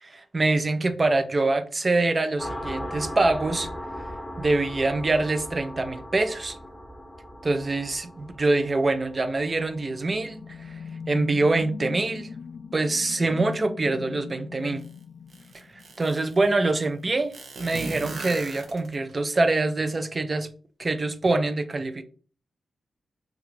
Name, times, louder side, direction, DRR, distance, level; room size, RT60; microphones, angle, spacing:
voice 1, 0.0-3.7 4.4-6.6 7.4-10.4 11.1-12.3 12.7-14.8 16.0-17.3 17.6-20.5 20.8-22.0, right 2 dB, 30° right, 0.4 m, -24 dB
sound 1, 2.4-11.6, equal, 5° left, 0.7 m, -39 dB
sound 2, 9.8-16.1, left 6 dB, 65° left, 0.3 m, -40 dB
sound 3, 14.8-14.9 15.3-16.4 17.3-19.1, right 3 dB, 75° right, 0.6 m, -38 dB
3.6 x 2.3 x 3.0 m
wide cardioid pair, 105°, 0 cm